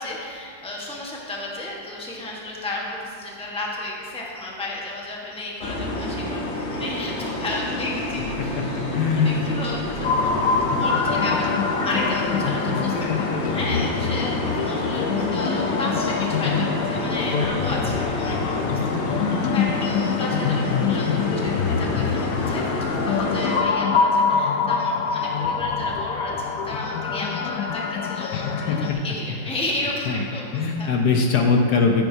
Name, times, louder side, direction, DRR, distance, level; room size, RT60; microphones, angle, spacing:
voice 1, 0.0-10.5 10.8-11.5 11.8-22.6 23.0-30.9, left 2 dB, 5° left, -3 dB, 0.9 m, -33 dB
sound 1, 5.6-23.6, left 1 dB, 40° left, 1.1 m, -28 dB
voice 2, 8.8-9.4 28.3-29.0 30.1-30.2 30.5-32.1, left 4 dB, 65° left, 2 dB, 1.1 m, -21 dB
sound 2, 10.0-28.9, left 5 dB, 80° left, 0.7 m, -25 dB
14.0 x 9.0 x 2.7 m, 2.5 s
omnidirectional pair, 2.1 m